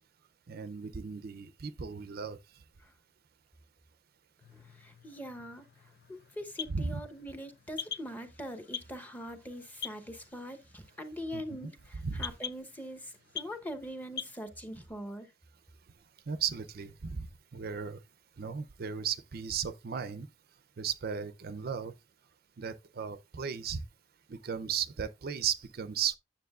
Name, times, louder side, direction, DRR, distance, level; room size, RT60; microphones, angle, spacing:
voice 1, 0.5-2.4 6.7-7.0 11.3-11.7 12.0-12.3 16.3-17.3 17.5-18.0 18.4-20.3 20.8-21.9 22.6-23.8 24.3-26.2, right 7 dB, 55° right, 0.5 m, -35 dB
sound 1, 4.4-14.4, left 7 dB, 60° left, 0.4 m, -46 dB
voice 2, 4.5-5.7 6.1-15.3, equal, 10° left, 0.9 m, -42 dB
9.3 x 7.0 x 2.4 m
head